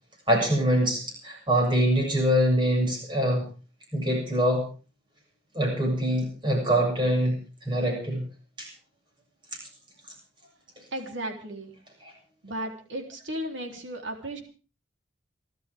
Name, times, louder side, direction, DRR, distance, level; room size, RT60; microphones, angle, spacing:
voice 1, 0.3-3.4 3.9-4.7 5.5-7.4 7.6-8.2 8.6-8.7, equal, 25° right, 0 dB, 7.5 m, -24 dB
voice 2, 10.9-11.7 12.4-14.4, right 1 dB, 80° right, 2 dB, 3.8 m, -35 dB
29.0 x 12.5 x 3.7 m, 0.37 s
head